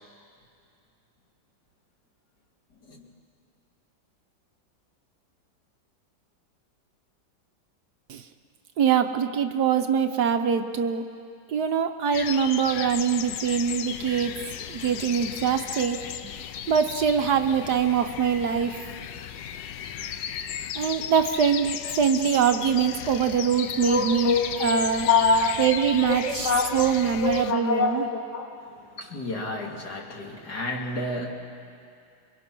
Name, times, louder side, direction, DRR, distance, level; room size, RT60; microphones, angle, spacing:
voice 1, 8.8-11.0 11.5-14.4 14.7-16.0 16.7-18.8 20.7-25.1 25.6-28.0, right 7 dB, 65° right, 7 dB, 1.4 m, -23 dB
sound 1, 12.1-27.5, left 9 dB, 75° left, 1.4 m, -35 dB
voice 2, 23.8-25.7 26.0-26.9 27.2-31.3, left 4 dB, 60° left, 0 dB, 2.9 m, -27 dB
27.5 x 23.0 x 6.1 m, 2.3 s
omnidirectional pair, 2.0 m